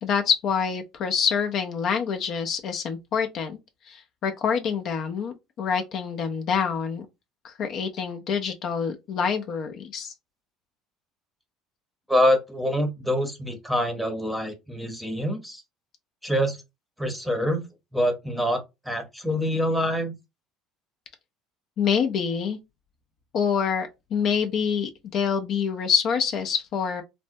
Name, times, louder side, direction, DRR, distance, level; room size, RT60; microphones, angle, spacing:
voice 1, 0.0-3.6 3.9-7.1 7.4-10.1 21.8-22.6 23.3-27.0, left 6 dB, 50° left, 0.5 m, -26 dB
voice 2, 12.1-15.6 16.2-16.6 17.0-17.6 17.9-20.1, equal, ahead, 0.8 m, -25 dB
3.3 x 2.1 x 2.6 m
cardioid pair, 115°, 0 cm